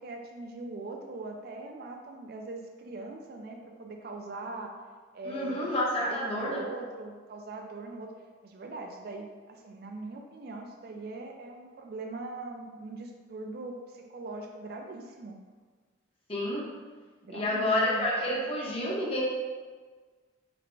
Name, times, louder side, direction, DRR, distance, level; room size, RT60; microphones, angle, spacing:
voice 1, 0.0-4.8 5.1-5.7 6.0-8.1 8.4-15.4 17.2-18.1, right 2 dB, 50° right, 2 dB, 0.3 m, -41 dB
voice 2, 5.2-6.6 16.3-16.7 17.3-19.2, left 1 dB, 30° left, -5 dB, 0.8 m, -29 dB
5.0 x 2.1 x 3.2 m, 1.4 s
head